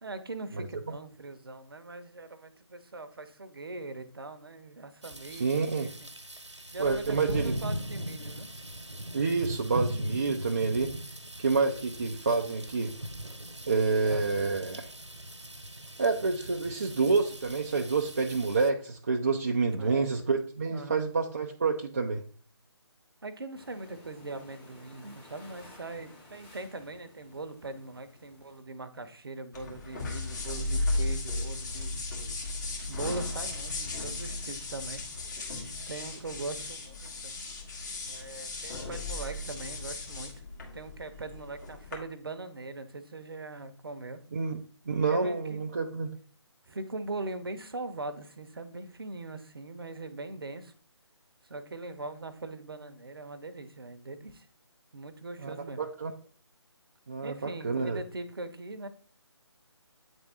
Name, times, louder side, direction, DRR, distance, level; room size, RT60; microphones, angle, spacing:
voice 1, 0.0-6.1 6.7-8.5 14.0-14.3 19.6-20.3 20.7-21.0 23.2-31.9 32.9-35.0 35.9-37.3 38.1-40.3 40.7-44.2 45.1-45.6 46.7-50.7 51.5-54.5 54.9-55.8 57.2-58.9, right 2 dB, 55° right, 10 dB, 0.8 m, -41 dB
sound 1, 5.0-18.7, right 1 dB, 85° right, 1.0 m, -39 dB
voice 2, 5.3-5.9 6.8-7.6 9.1-10.9 11.4-12.9 13.7-14.9 16.0-22.2 44.3-44.6 44.9-46.1 55.4-56.1 57.1-58.0, right 4 dB, 30° right, 2 dB, 0.4 m, -28 dB
sound 2, 23.5-28.6, left 1 dB, 5° left, 1.1 m, -54 dB
sound 3, 29.5-42.0, left 2 dB, 40° left, 1.9 m, -35 dB
8.4 x 3.6 x 4.1 m, 0.44 s
figure-of-eight pair, 150°, 15 cm